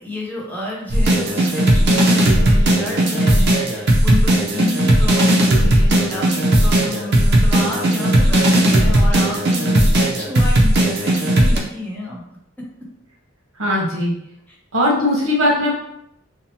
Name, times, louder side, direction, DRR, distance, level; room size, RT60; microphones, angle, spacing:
voice 1, 0.0-12.2 12.6-12.7 14.5-14.6, left 2 dB, 10° left, -4 dB, 0.5 m, -29 dB
sound 1, 0.9-11.6, right 1 dB, 55° right, 0.5 m, -16 dB
voice 2, 13.6-14.1 14.7-15.7, left 1 dB, 70° right, -3 dB, 0.9 m, -18 dB
2.7 x 2.0 x 2.8 m, 0.77 s
head